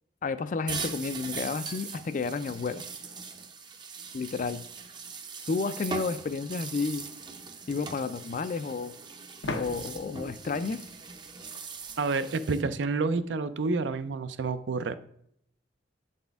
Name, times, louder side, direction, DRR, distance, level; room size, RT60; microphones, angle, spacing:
voice 1, 0.2-2.8 4.1-4.7 5.5-7.1 7.7-8.9 9.5-10.8, left 4 dB, 45° left, 13 dB, 0.3 m, -31 dB
sound 1, 0.7-12.6, right 5 dB, 25° right, 0.5 m, -41 dB
sound 2, 9.4-12.1, left 2 dB, 85° left, 0.8 m, -40 dB
voice 2, 12.0-14.9, right 4 dB, 75° right, 13 dB, 0.4 m, -29 dB
7.6 x 4.2 x 3.4 m, 0.71 s
head